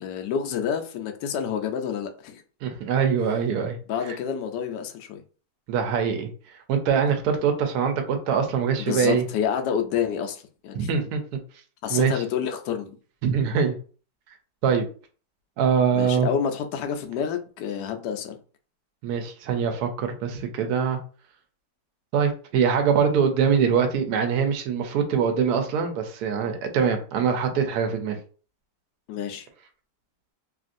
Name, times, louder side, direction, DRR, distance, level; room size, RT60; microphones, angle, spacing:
voice 1, 0.0-2.4 3.9-5.2 8.8-11.0 11.8-13.0 15.9-18.4 29.1-29.5, left 7 dB, 80° left, 6 dB, 1.2 m, -28 dB
voice 2, 2.6-3.8 5.7-6.3 6.7-9.2 10.7-11.2 11.9-12.1 13.2-13.8 14.6-14.9 15.6-16.3 19.0-21.0 22.1-28.2, right 6 dB, 70° right, 5 dB, 1.1 m, -23 dB
3.1 x 2.6 x 2.5 m, 0.39 s
omnidirectional pair, 1.8 m